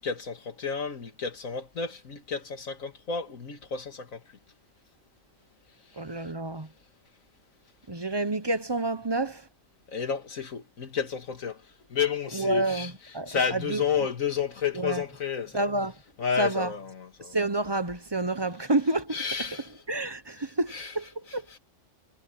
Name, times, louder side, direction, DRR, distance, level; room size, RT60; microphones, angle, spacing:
voice 1, 0.0-4.2 9.9-11.6 11.9-12.9 13.3-15.7 16.2-17.3 19.1-19.7 20.7-20.9, left 6 dB, 85° left, 2.4 m, -31 dB
voice 2, 6.0-6.7 7.9-9.4 12.3-13.8 14.7-15.0 15.5-15.9 16.4-16.7 17.3-19.2 19.9-21.0 21.3-21.4, right 2 dB, 20° right, 0.9 m, -29 dB
omnidirectional pair, 1.4 m